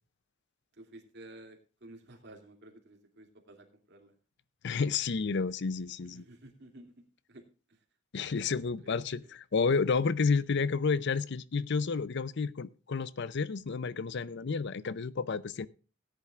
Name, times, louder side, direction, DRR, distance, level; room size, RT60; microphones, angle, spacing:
voice 1, 0.7-4.1 6.0-7.8 8.2-9.3, right 1 dB, 60° right, 2.5 m, -54 dB
voice 2, 4.6-6.2 8.1-15.7, left 5 dB, 60° left, 0.6 m, -30 dB
17.5 x 10.5 x 2.4 m
head